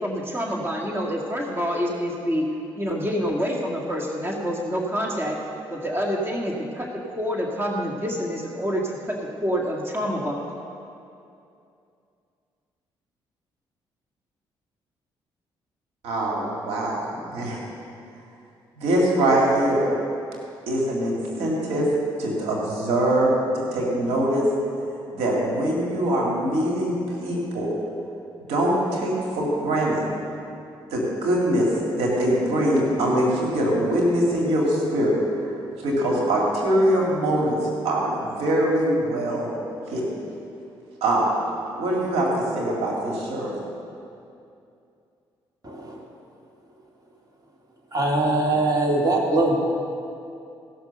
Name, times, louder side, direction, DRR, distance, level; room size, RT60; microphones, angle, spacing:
voice 1, 0.0-2.5 2.7-5.4 5.7-10.4, equal, 25° right, -1 dB, 1.9 m, -27 dB
voice 2, 16.0-17.6 18.8-19.9 20.7-21.9 22.2-24.4 25.1-27.7 28.5-30.0 30.9-31.7 32.0-35.5 35.8-37.6 37.8-39.5 39.9-40.3 41.0-41.3 41.8-43.5, right 1 dB, 85° right, -3 dB, 2.1 m, -23 dB
voice 3, 45.6-46.0 47.9-49.6, right 2 dB, 40° right, -1 dB, 2.6 m, -22 dB
16.0 x 6.0 x 6.8 m, 2.6 s
supercardioid pair, 60°, 10 cm